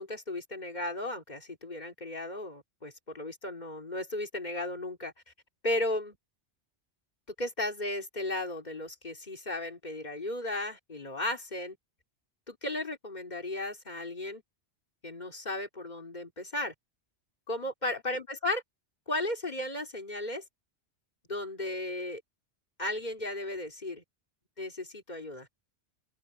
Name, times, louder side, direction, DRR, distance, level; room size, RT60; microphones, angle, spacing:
voice 1, 0.0-5.1 5.6-6.1 7.4-11.8 12.5-14.4 15.0-16.7 17.5-18.6 19.1-20.4 21.3-22.2 22.8-24.0 24.6-25.5, left 1 dB, 40° left, 2.9 m, -35 dB
open air
omnidirectional pair, 1.2 m